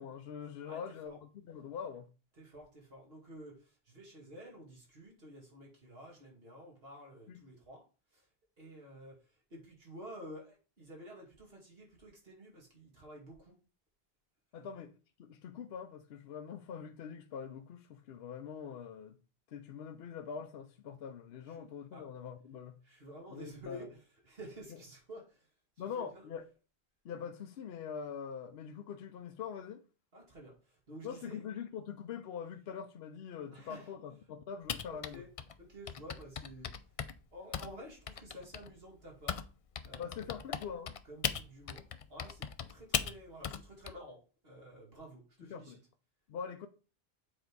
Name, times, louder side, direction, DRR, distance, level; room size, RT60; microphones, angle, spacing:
voice 1, 0.0-2.1 7.3-7.4 14.5-14.9 15.2-19.2 19.5-22.8 23.3-23.9 25.8-26.5 27.0-29.8 31.0-35.2 40.0-40.9 45.4-45.8 46.3-46.7, left 7 dB, 75° left, 0.8 m, -43 dB
voice 2, 0.6-1.2 2.4-7.8 8.1-8.3 8.6-13.6 14.5-14.7 21.5-21.7 21.9-22.0 22.8-25.5 25.8-26.3 30.1-31.4 33.5-33.9 34.9-35.3 35.6-36.7 37.3-39.5 39.8-40.3 41.0-41.8 42.1-45.8, equal, 70° right, 2.6 m, -51 dB
Typing, 34.7-39.5 39.7-43.9, left 7 dB, 50° left, 0.4 m, -38 dB
7.5 x 3.9 x 4.6 m
omnidirectional pair, 1.0 m